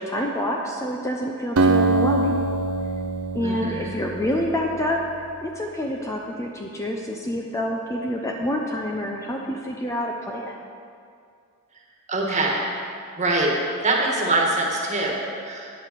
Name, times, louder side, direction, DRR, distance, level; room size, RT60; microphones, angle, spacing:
voice 1, 0.0-2.5 3.3-5.0 5.4-10.6, left 1 dB, 15° left, 0 dB, 0.6 m, -27 dB
Acoustic guitar, 1.6-5.1, right 2 dB, 70° right, 0.7 m, -24 dB
voice 2, 3.4-3.9 12.1-12.6 13.2-13.5 13.8-15.7, right 2 dB, 30° right, -2 dB, 1.7 m, -24 dB
9.2 x 7.9 x 6.7 m, 2.3 s
head